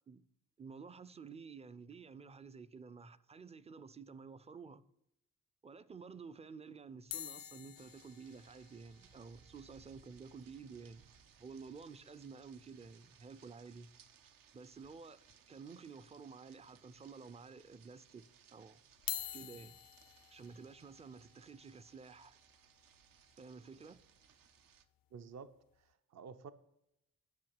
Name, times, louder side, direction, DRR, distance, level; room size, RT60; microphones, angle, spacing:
voice 1, 0.6-4.8 5.6-11.0 11.4-13.9 14.5-15.2 15.5-18.8 19.3-19.8 20.3-22.4 23.4-24.0, right 5 dB, 20° right, 0.4 m, -52 dB
sound 1, 7.1-11.4 11.7-11.8 12.0-12.2 12.6-12.7 14.1-14.2 14.8-15.4 15.9-16.0 16.8-16.9 18.9-25.0 25.6-25.8, left 12 dB, 85° left, 0.5 m, -49 dB
sound 2, 7.8-24.9, right 8 dB, 80° right, 0.9 m, -65 dB
voice 2, 25.1-25.5 25.8-26.5, right 5 dB, 55° right, 0.6 m, -51 dB
10.5 x 6.5 x 8.8 m
wide cardioid pair, 175°, 33 cm